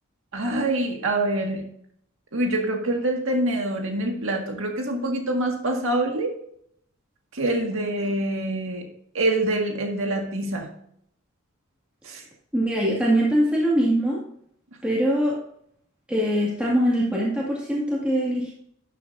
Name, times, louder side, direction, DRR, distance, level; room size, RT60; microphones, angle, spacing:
voice 1, 0.3-1.6 2.3-6.3 7.3-8.9 9.1-10.7 12.0-12.2, right 1 dB, 65° right, 2 dB, 1.8 m, -25 dB
voice 2, 12.5-14.2 14.8-15.3 16.1-18.5, equal, 5° right, -5 dB, 2.1 m, -22 dB
12.5 x 7.5 x 2.6 m, 0.68 s
head